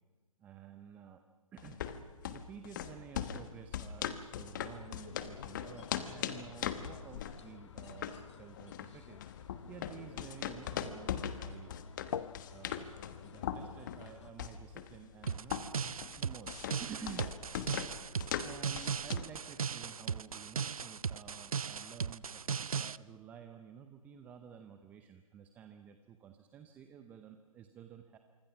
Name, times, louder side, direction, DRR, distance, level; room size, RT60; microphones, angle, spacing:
voice 1, 0.4-1.2 1.5-1.8 2.3-8.1 8.4-9.2 9.7-11.7 12.5-12.9 13.2-15.6 16.2-17.3 18.4-28.2, right 8 dB, 10° right, 7 dB, 0.6 m, -51 dB
sound 1, 1.6-19.4, left 9 dB, 35° left, 1.2 m, -41 dB
sound 2, 4.6-14.3, left 8 dB, 55° left, 0.8 m, -49 dB
sound 3, 15.3-23.0, right 6 dB, 75° right, 0.6 m, -37 dB
26.0 x 25.0 x 6.0 m, 1.4 s
hypercardioid pair, 150°, 18 cm